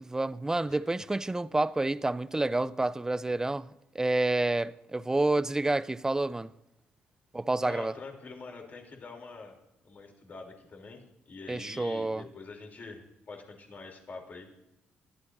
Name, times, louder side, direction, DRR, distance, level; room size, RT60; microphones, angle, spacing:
voice 1, 0.1-3.7 3.9-6.5 7.3-7.9 11.5-12.2, right 2 dB, 15° right, 0.5 m, -29 dB
voice 2, 7.6-9.5 9.8-14.5, left 3 dB, 45° left, 3.2 m, -45 dB
22.0 x 13.0 x 2.6 m
cardioid pair, 75°, 4 cm